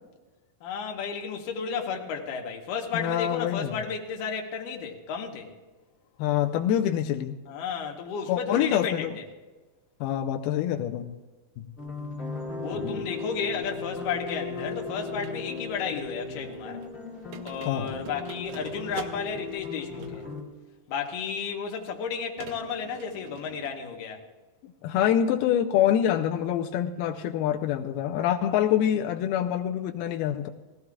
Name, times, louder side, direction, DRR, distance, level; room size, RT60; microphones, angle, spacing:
voice 1, 0.6-5.5 7.5-9.3 12.6-16.8 17.4-20.2 20.9-24.2, left 6 dB, 70° left, 2 dB, 2.6 m, -33 dB
voice 2, 2.9-3.8 6.2-7.4 8.3-9.2 10.0-11.1 11.6-11.7 12.7-13.0 17.7-18.0 24.6-30.5, left 10 dB, 90° left, 3 dB, 2.5 m, -26 dB
sound 1, 11.8-20.4, left 4 dB, 20° left, 1.8 m, -37 dB
sound 2, 13.1-20.4 21.2-21.3 22.4-23.7, right 8 dB, 75° right, 1.9 m, -46 dB
20.0 x 15.5 x 2.4 m, 1.3 s
omnidirectional pair, 4.4 m